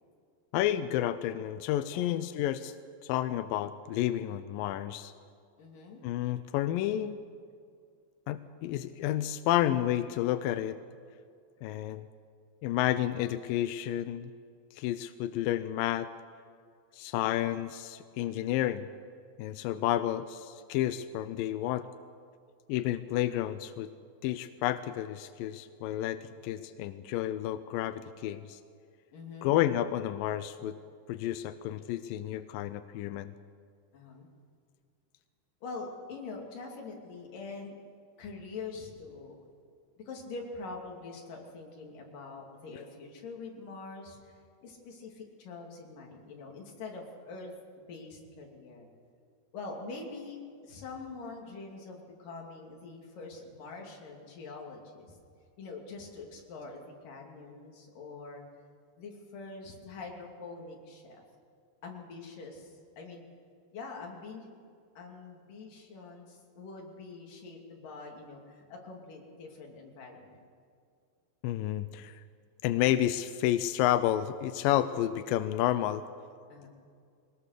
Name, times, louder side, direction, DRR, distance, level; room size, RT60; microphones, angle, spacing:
voice 1, 0.5-2.7 3.0-5.1 6.0-7.2 8.3-10.8 11.6-12.1 12.6-14.3 14.7-16.1 16.9-18.9 19.4-21.9 22.7-23.9 24.2-28.6 29.4-30.8 31.1-33.3 71.4-72.2 72.6-76.0, left 12 dB, 80° left, 11 dB, 2.1 m, -30 dB
voice 2, 1.9-2.2 5.6-6.0 29.1-29.6 33.9-34.3 35.6-37.8 38.2-39.4 40.1-44.3 44.6-47.5 47.8-48.9 49.5-55.1 55.6-58.4 59.0-61.2 61.8-63.2 63.7-64.5 65.0-70.4 76.5-76.7, left 3 dB, 60° left, 0 dB, 4.1 m, -44 dB
22.0 x 19.5 x 6.6 m, 2.3 s
omnidirectional pair, 4.5 m